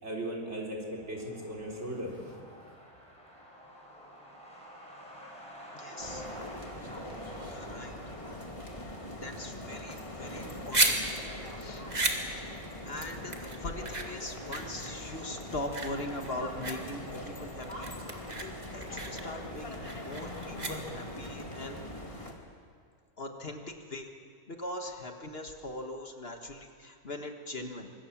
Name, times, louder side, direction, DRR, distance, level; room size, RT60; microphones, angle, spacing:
voice 1, 0.0-2.2, right 1 dB, 45° right, -1 dB, 4.1 m, -37 dB
Truck, 0.9-16.1 16.4-16.5 16.8-17.7 18.0-18.1 18.4-18.8, equal, 5° left, 6.4 m, -51 dB
voice 2, 5.7-6.3 7.4-7.9 9.2-11.0 11.6-11.9 12.5-17.9 18.4-21.8 22.2-22.3 23.2-24.1 24.5-27.9, left 1 dB, 40° left, 4 dB, 1.7 m, -41 dB
sound 1, 6.0-22.3, left 1 dB, 20° left, 2.3 m, -42 dB
sound 2, 10.3-21.2, right 2 dB, 25° right, 2.1 m, -34 dB
25.0 x 21.0 x 7.3 m, 2.1 s
omnidirectional pair, 1.6 m